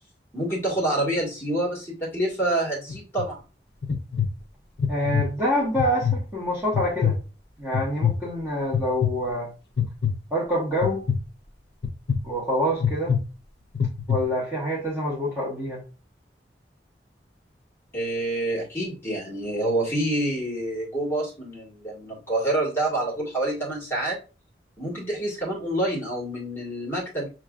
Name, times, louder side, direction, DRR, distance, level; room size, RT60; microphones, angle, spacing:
voice 1, 0.3-3.4 17.9-24.2 24.8-27.3, right 1 dB, 15° left, 1.8 m, -27 dB
sound 1, 2.9-3.3 3.8-4.3 4.8-5.3 5.8-6.2 6.7-7.2 7.7-8.2 8.7-9.1 9.8-10.2 10.8-11.2 11.8-12.2 12.8-13.2 13.8-14.2, left 8 dB, 65° left, 0.5 m, -23 dB
voice 2, 4.9-7.2 7.6-9.5 10.3-11.0 12.2-13.2 14.1-15.8, equal, 15° right, 1.1 m, -26 dB
6.2 x 3.1 x 2.4 m
head